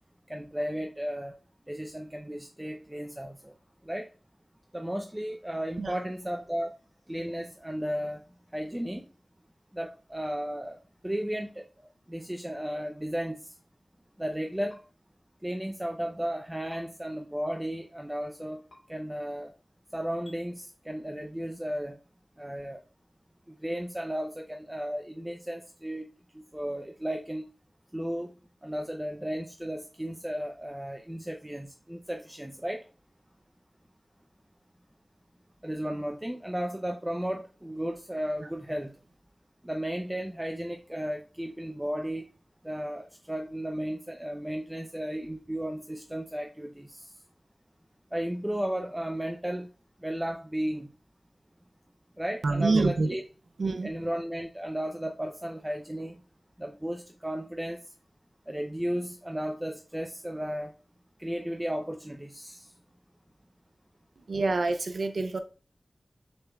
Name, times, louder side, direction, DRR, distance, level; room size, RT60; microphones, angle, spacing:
voice 1, 0.3-1.3 1.7-3.5 3.8-4.1 4.7-6.7 7.1-8.2 8.5-9.1 9.7-10.8 11.0-13.4 14.2-14.8 15.4-18.6 18.9-19.5 19.9-22.0 22.4-22.8 23.5-26.1 26.3-27.5 27.9-28.3 28.6-32.8 35.6-38.9 39.6-42.3 42.6-47.1 48.1-49.7 50.0-50.9 52.2-53.2 53.8-56.2 56.6-57.8 58.5-60.7 61.2-62.7, equal, 15° right, 2 dB, 0.5 m, -34 dB
sound 1, 14.7-14.8 16.7-16.8 18.7-18.8 20.2-20.4, left 1 dB, 70° left, 1.9 m, -53 dB
voice 2, 52.4-53.2 53.6-53.9 64.3-65.4, right 3 dB, 85° right, 7 dB, 0.4 m, -26 dB
6.7 x 3.4 x 2.3 m, 0.36 s
wide cardioid pair, 75°, 0 cm